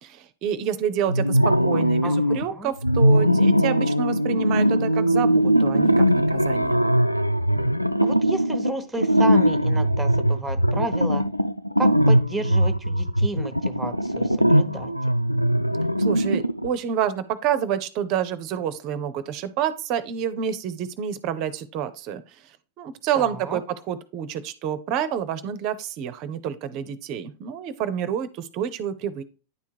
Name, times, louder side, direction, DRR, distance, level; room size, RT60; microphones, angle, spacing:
voice 1, 0.0-6.8 16.0-22.2 22.8-23.6 23.9-29.2, right 9 dB, 40° right, 13 dB, 0.6 m, -28 dB
sound 1, 1.1-2.4 2.8-16.7, equal, 90° right, 0.3 m, -20 dB
voice 2, 1.7-2.7 8.0-11.3 11.8-14.9 23.1-23.6, right 2 dB, 5° right, 10 dB, 0.9 m, -32 dB
9.6 x 3.5 x 4.6 m, 0.34 s
figure-of-eight pair, 90°, 0 cm